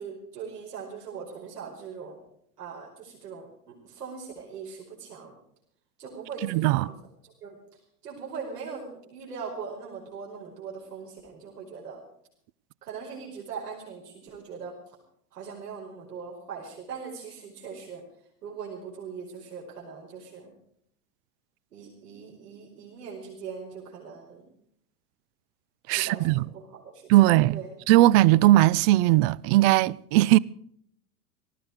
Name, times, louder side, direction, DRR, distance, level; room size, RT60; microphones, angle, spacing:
voice 1, 0.0-2.2 2.6-5.4 6.0-7.0 7.2-7.6 8.0-12.0 12.8-14.8 15.3-18.0 18.4-20.5 21.7-24.5 25.9-27.0 27.5-27.7, right 5 dB, 80° right, 5.2 m, -40 dB
voice 2, 6.5-6.9 25.9-26.4 27.1-27.6 27.9-30.4, right 16 dB, 45° right, 0.6 m, -19 dB
19.0 x 14.5 x 4.8 m
hypercardioid pair, 95°, 47 cm